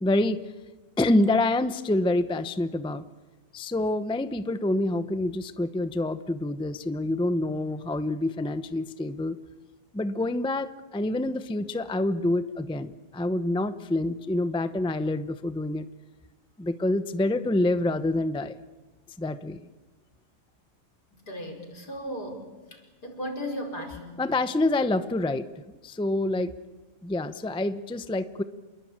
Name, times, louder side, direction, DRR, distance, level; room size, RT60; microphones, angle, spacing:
voice 1, 0.0-0.4 1.0-3.0 3.5-9.4 9.9-15.9 16.6-18.6 19.2-19.6 24.2-25.5 25.8-26.5 27.0-28.4, left 2 dB, 5° left, 12 dB, 0.5 m, -27 dB
voice 2, 21.1-24.2, equal, 80° left, 3 dB, 5.7 m, -36 dB
28.0 x 22.5 x 8.8 m, 1.2 s
omnidirectional pair, 1.7 m